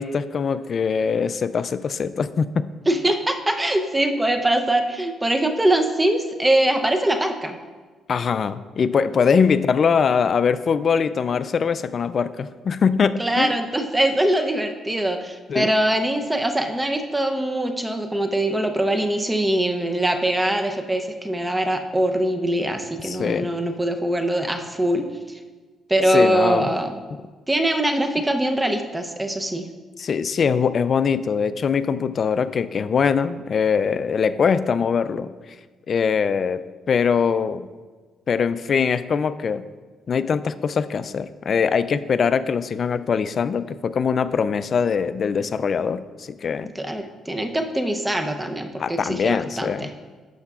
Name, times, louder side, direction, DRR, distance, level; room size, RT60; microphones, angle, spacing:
voice 1, 0.0-2.7 8.1-13.5 15.5-15.7 23.0-23.5 26.1-26.7 30.0-35.3 35.9-37.7 38.3-39.6 40.1-46.7 48.8-49.9, left 6 dB, 50° left, 13 dB, 0.3 m, -22 dB
voice 2, 2.9-7.6 13.2-25.4 25.9-27.1 27.5-29.7 46.7-49.9, right 1 dB, 15° right, 5 dB, 0.7 m, -22 dB
11.5 x 6.5 x 2.4 m, 1.4 s
cardioid pair, 90°, 0 cm